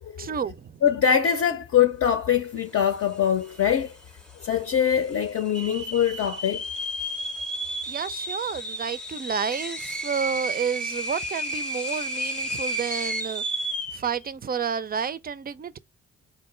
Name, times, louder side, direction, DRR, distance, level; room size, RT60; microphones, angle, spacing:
voice 1, 0.2-0.8 7.9-13.4 13.9-15.8, right 7 dB, 30° right, 0.4 m, -30 dB
voice 2, 0.8-4.0 4.4-6.7, left 8 dB, 55° left, 0.7 m, -23 dB
sound 1, 3.1-3.2 3.4-4.0 4.5-4.6 5.3-14.1, right 1 dB, 5° left, 0.7 m, -32 dB
3.8 x 2.2 x 4.3 m
supercardioid pair, 60°, 31 cm